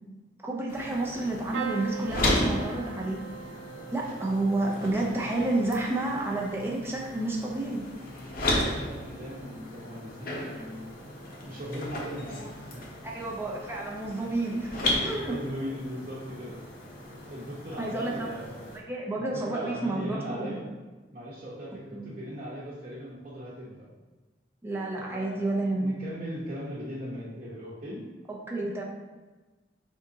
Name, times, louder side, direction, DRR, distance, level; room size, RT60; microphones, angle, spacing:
voice 1, 0.4-3.2 3.9-7.8 13.0-15.4 17.8-18.4 18.7-20.6 21.9-22.1 24.6-25.9 28.5-28.8, right 2 dB, 15° right, -2 dB, 0.5 m, -30 dB
sound 1, 0.7-18.8, left 1 dB, 50° left, 0.8 m, -35 dB
sound 2, 1.5-9.4 9.8-10.4 11.6-11.8 12.0-12.1, right 4 dB, 85° right, 0.4 m, -43 dB
voice 2, 8.4-11.1 11.5-12.8 15.2-16.6 17.3-18.7 19.2-20.7 21.1-23.9 25.0-28.0, equal, 40° right, -9 dB, 0.9 m, -39 dB
4.8 x 3.6 x 2.8 m, 1.2 s
head